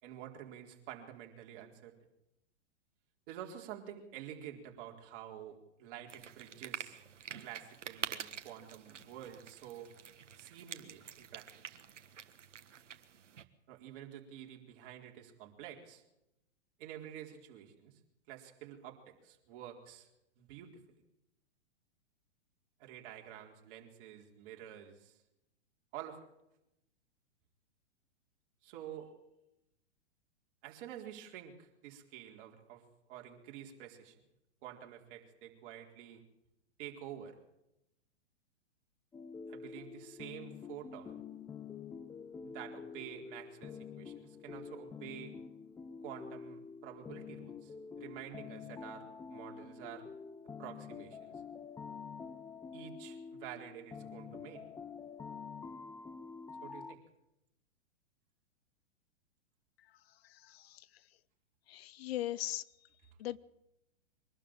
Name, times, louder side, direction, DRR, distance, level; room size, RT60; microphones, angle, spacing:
voice 1, 0.0-1.9 3.3-7.0 7.4-9.9 10.4-11.8 13.7-16.0 16.8-17.9 18.3-20.1 20.4-20.8 22.8-25.2 25.9-26.2 28.6-29.1 30.6-32.8 33.1-34.1 34.6-36.2 36.8-37.4 39.5-41.2 42.4-45.4 46.0-50.0 50.6-51.4 52.7-54.6 56.6-57.0, right 10 dB, 50° right, 2 dB, 4.3 m, -49 dB
sound 1, 6.1-13.4, right 8 dB, 85° right, 1.6 m, -47 dB
sound 2, 39.1-57.0, left 6 dB, 10° left, 0.7 m, -47 dB
voice 2, 60.3-60.9 61.7-62.6 63.2-63.4, left 14 dB, 55° left, 20 dB, 0.8 m, -39 dB
23.5 x 12.5 x 9.0 m, 0.86 s
hypercardioid pair, 125°, 36 cm